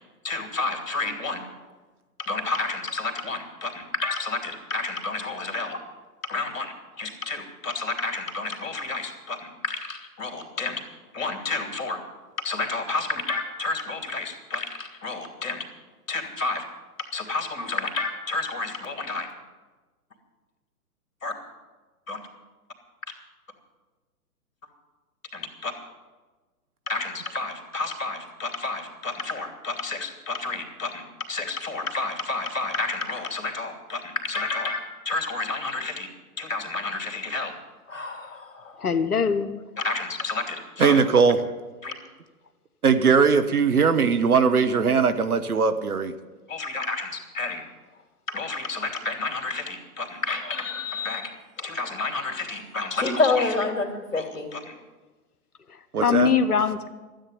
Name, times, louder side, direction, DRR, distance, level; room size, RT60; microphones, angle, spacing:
voice 1, 0.2-1.4 2.2-5.8 6.2-10.8 11.1-12.0 12.4-15.6 16.1-16.6 17.1-19.3 21.2-21.3 22.1-22.2 25.3-25.7 26.9-36.1 36.4-37.5 37.9-38.8 39.8-41.0 41.8-41.9 46.5-47.6 48.3-54.8, left 3 dB, 55° left, 5 dB, 2.8 m, -30 dB
voice 2, 38.8-39.6 56.0-56.9, left 6 dB, 75° left, 10 dB, 1.0 m, -22 dB
voice 3, 40.8-41.4 42.8-46.1 55.9-56.3, right 5 dB, 70° right, 9 dB, 1.3 m, -20 dB
13.0 x 8.5 x 9.8 m, 1.3 s
figure-of-eight pair, 120°, 46 cm